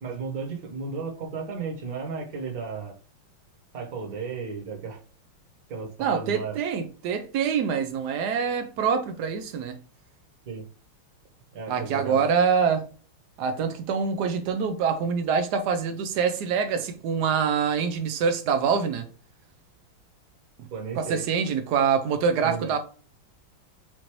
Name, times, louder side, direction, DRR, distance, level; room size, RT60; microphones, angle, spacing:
voice 1, 0.0-2.9 3.7-5.0 5.7-6.6 10.5-10.7 11.5-12.3 20.7-21.2 22.4-22.7, right 5 dB, 50° right, 1.3 m, -34 dB
voice 2, 6.0-9.8 11.7-12.8 13.4-19.1 20.6-20.7 20.9-22.8, right 6 dB, 80° right, 0.9 m, -25 dB
5.9 x 2.6 x 3.0 m
omnidirectional pair, 2.4 m